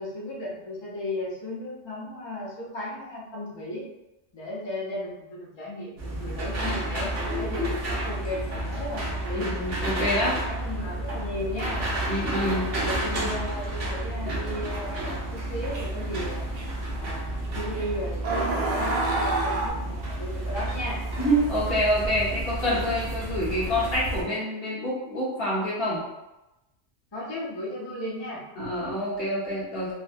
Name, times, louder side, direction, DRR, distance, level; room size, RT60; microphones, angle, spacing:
voice 1, 0.0-3.9 4.3-9.5 10.1-11.8 12.7-16.5 16.9-21.0 27.1-28.4, left 1 dB, 30° left, -6 dB, 0.6 m, -35 dB
sound 1, 6.0-24.2, right 1 dB, 85° right, 1.1 m, -31 dB
voice 2, 7.3-7.7 9.3-10.3 12.1-13.3 21.2-26.0 28.6-29.9, equal, 55° left, -7 dB, 1.3 m, -27 dB
sound 2, 14.7-14.8 15.7-16.1 16.6-16.7 17.7-17.8 18.2-19.7, right 2 dB, 55° right, 0.7 m, -27 dB
3.8 x 2.2 x 2.4 m, 0.96 s
omnidirectional pair, 1.2 m